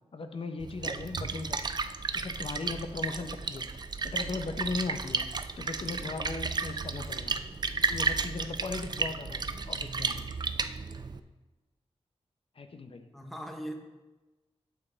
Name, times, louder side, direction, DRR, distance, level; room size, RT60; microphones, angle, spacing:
voice 1, 0.1-1.7 2.1-5.3 5.6-7.4 7.8-10.3 12.5-13.1, left 3 dB, 60° left, 7 dB, 0.7 m, -38 dB
Splash splatter, 0.6-11.2, right 4 dB, 40° right, 0.4 m, -33 dB
voice 2, 13.1-13.7, equal, ahead, 3 dB, 1.1 m, -40 dB
8.8 x 7.6 x 4.0 m, 1.2 s
wide cardioid pair, 100°, 11 cm